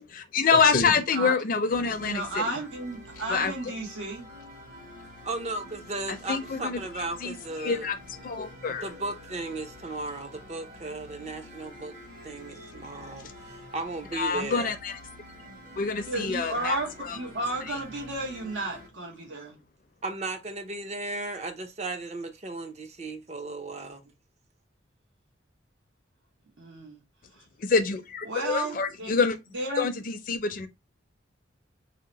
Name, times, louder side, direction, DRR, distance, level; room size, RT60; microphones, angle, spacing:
voice 1, 0.0-2.6 3.3-3.7 6.1-8.0 8.2-8.9 14.1-15.0 15.8-17.2 17.7-17.8 27.6-29.4 29.8-30.7, left 5 dB, 45° left, 0.4 m, -27 dB
sound 1, 1.7-18.9, left 1 dB, 55° right, 1.3 m, -47 dB
voice 2, 2.0-4.3 16.1-19.6 26.6-27.0 27.4-27.5 28.3-29.1 29.5-29.9, right 2 dB, 80° right, 0.9 m, -33 dB
voice 3, 5.2-7.9 8.7-12.0 12.2-14.7 20.0-24.0, right 2 dB, 35° right, 0.5 m, -35 dB
2.8 x 2.0 x 3.8 m
head